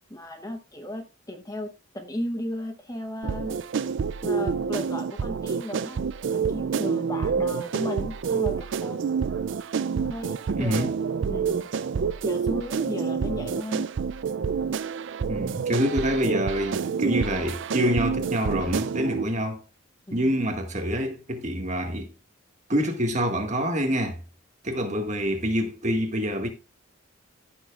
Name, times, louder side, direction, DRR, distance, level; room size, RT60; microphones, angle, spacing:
voice 1, 0.1-3.6 4.2-9.1 10.0-10.9 11.3-11.7 12.2-13.9 20.1-20.3, left 1 dB, 15° left, 0.9 m, -35 dB
sound 1, 3.2-19.2, right 6 dB, 55° right, 0.4 m, -28 dB
voice 2, 10.6-10.9 15.3-19.6 20.1-22.1 22.7-24.2 24.6-26.5, equal, 35° right, 1.7 m, -26 dB
15.5 x 6.9 x 2.4 m
head